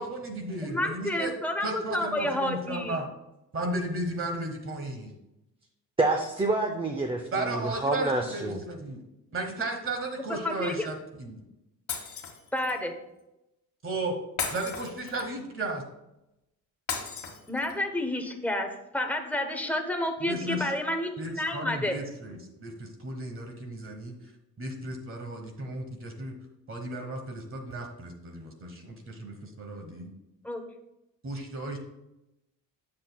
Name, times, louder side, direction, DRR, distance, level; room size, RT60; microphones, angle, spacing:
voice 1, 0.0-1.3 1.6-3.1 3.5-5.1 7.3-9.0 9.3-11.4 13.8-14.1 14.5-15.8 20.3-20.7 21.2-24.1 24.6-26.3 26.7-30.1 31.2-31.8, right 2 dB, 35° right, 3 dB, 1.1 m, -34 dB
voice 2, 0.6-3.0 10.4-10.9 12.5-12.9 17.5-21.9 30.4-30.6, left 1 dB, 5° left, 3 dB, 0.8 m, -30 dB
voice 3, 6.0-8.6, right 2 dB, 15° right, 3 dB, 0.5 m, -28 dB
Shatter, 11.9-12.8 14.4-15.5 16.9-17.9, left 6 dB, 55° left, 1.5 m, -35 dB
8.0 x 7.4 x 2.3 m, 0.91 s
cardioid pair, 130°, 35 cm